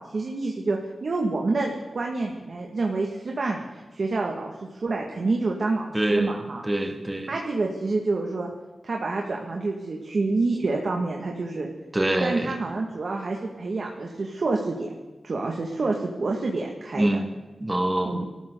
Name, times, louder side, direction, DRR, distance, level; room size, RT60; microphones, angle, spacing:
voice 1, 0.0-6.6 7.3-8.5 8.8-11.7 12.2-14.9 15.2-17.2 18.1-18.2, right 3 dB, 50° right, 0 dB, 1.9 m, -28 dB
voice 2, 5.9-7.3 11.9-12.5 16.9-17.3 17.6-18.2, right 1 dB, 15° right, 5 dB, 1.4 m, -25 dB
25.0 x 14.5 x 3.9 m, 1.2 s
wide cardioid pair, 165°, 0 cm